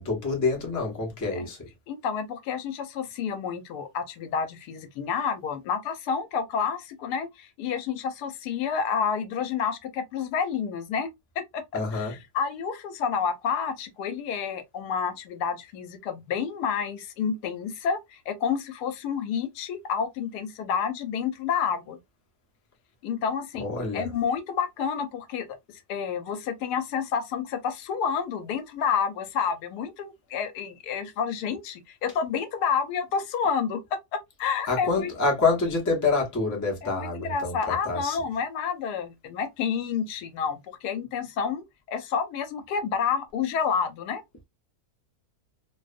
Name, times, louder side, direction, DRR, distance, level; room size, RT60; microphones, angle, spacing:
voice 1, 0.0-1.6 11.7-12.2 23.5-24.1 34.7-38.2, left 3 dB, 30° left, 0.3 m, -27 dB
voice 2, 1.9-11.1 11.4-22.0 23.0-25.5 25.9-35.1 36.8-44.2, left 6 dB, 85° left, 1.1 m, -29 dB
2.6 x 2.0 x 2.4 m
omnidirectional pair, 1.7 m